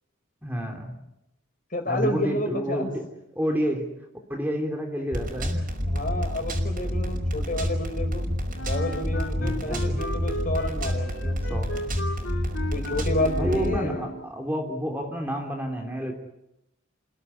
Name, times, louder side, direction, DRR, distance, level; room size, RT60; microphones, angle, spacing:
voice 1, 0.4-1.0 1.9-2.9 3.3-3.9 4.3-5.7 9.4-10.0 11.5-11.7 13.4-16.1, equal, 10° right, 2 dB, 3.1 m, -29 dB
voice 2, 1.7-2.9 5.9-8.2 8.6-11.4 12.7-14.0, left 1 dB, 40° left, 4 dB, 5.8 m, -30 dB
sound 1, 5.1-13.8, equal, 40° right, 5.3 m, -28 dB
Wind instrument woodwind instrument, 8.5-14.3, equal, 65° left, 4.0 m, -36 dB
29.5 x 17.5 x 9.9 m, 0.87 s
head